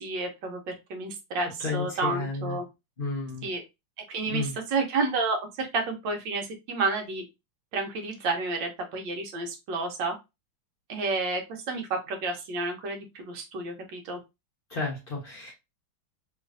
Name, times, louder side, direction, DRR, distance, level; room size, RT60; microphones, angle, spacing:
voice 1, 0.0-2.6 3.4-3.6 4.1-7.2 7.7-10.2 10.9-14.2, right 3 dB, 70° right, 4 dB, 1.4 m, -30 dB
voice 2, 1.6-2.6 3.0-3.5 4.3-4.5 14.7-15.5, left 3 dB, 45° left, -2 dB, 0.7 m, -32 dB
3.2 x 3.0 x 2.5 m, 0.23 s
omnidirectional pair, 2.2 m